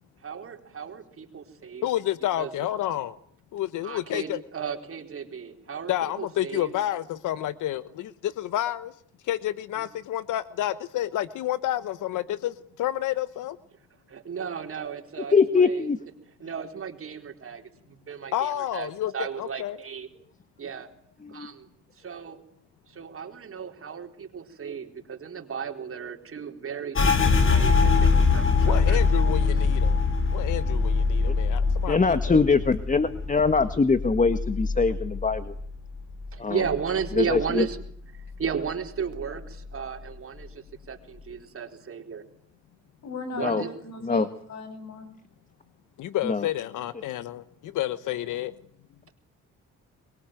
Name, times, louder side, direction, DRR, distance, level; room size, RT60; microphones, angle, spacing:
voice 1, 0.2-1.9 2.4-2.5 3.8-6.7 9.8-9.9 14.1-15.9 16.4-20.1 20.6-20.9 21.3-21.7 22.0-22.4 22.9-29.0 36.3-37.8 38.4-42.2 43.4-43.7, right 6 dB, 45° right, 5 dB, 4.2 m, -34 dB
voice 2, 1.8-3.2 3.5-4.4 5.9-8.9 9.3-13.6 18.3-19.1 19.4-19.8 28.7-30.0 30.3-32.4 46.0-48.5, left 13 dB, 85° left, 15 dB, 1.2 m, -30 dB
voice 3, 15.3-16.0 21.2-21.5 31.2-31.4 31.9-35.5 36.4-36.6 37.2-37.6 43.4-43.6 44.0-44.3 46.2-46.5, left 4 dB, 25° left, 12 dB, 1.6 m, -23 dB
sound 1, 26.9-36.4 36.6-37.9 38.2-38.7 39.1-39.7, left 4 dB, 45° left, 3.9 m, -24 dB
voice 4, 43.0-45.1, left 3 dB, 60° left, 10 dB, 7.4 m, -37 dB
24.0 x 23.0 x 9.2 m, 0.62 s
cardioid pair, 90°, 30 cm